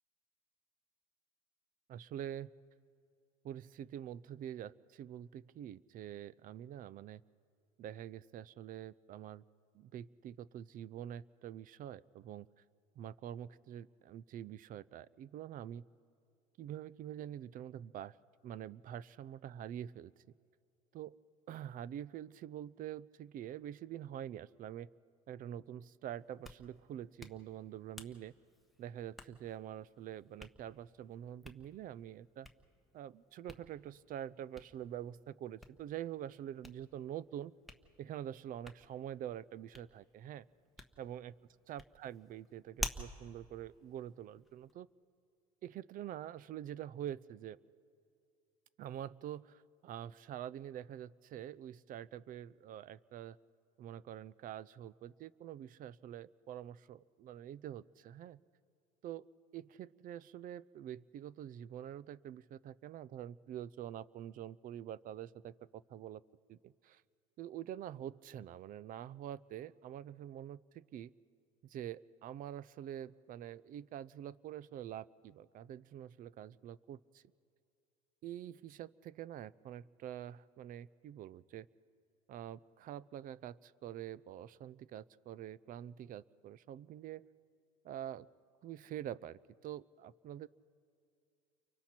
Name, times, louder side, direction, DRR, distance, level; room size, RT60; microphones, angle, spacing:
voice 1, 1.9-2.5 3.4-7.2 7.8-9.4 9.7-12.5 13.0-15.8 16.6-18.2 18.4-20.1 20.9-21.1 21.5-24.9 25.3-28.3 28.8-32.5 32.9-37.5 38.0-40.5 41.0-41.3 41.7-44.9 45.6-47.6 48.8-53.4 53.8-58.4 59.0-59.3 59.5-66.2 66.5-67.0 67.4-71.1 71.6-77.2 78.2-81.7 82.3-87.3 87.8-88.3 88.6-90.5, right 11 dB, 45° right, 21 dB, 0.6 m, -46 dB
Hands, 26.2-44.7, left 1 dB, ahead, 1.3 m, -51 dB
30.0 x 24.0 x 4.4 m, 2.4 s
supercardioid pair, 95°, 19 cm